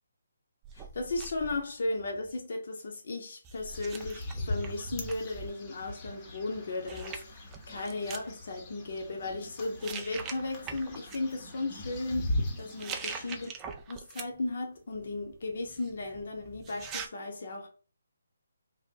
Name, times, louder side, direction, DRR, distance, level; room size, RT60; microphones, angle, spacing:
sound 1, 0.6-2.5 3.4-5.5 6.5-6.6 6.9-8.3 9.0-9.4 9.8-11.2 12.6-14.5 14.9-17.1, right 6 dB, 15° right, 0.3 m, -43 dB
voice 1, 0.7-13.5 13.9-17.7, left 2 dB, 55° left, 0.7 m, -36 dB
sound 2, 3.5-13.5, left 1 dB, 20° left, 0.7 m, -39 dB
2.8 x 2.0 x 3.7 m
figure-of-eight pair, 145°, 0 cm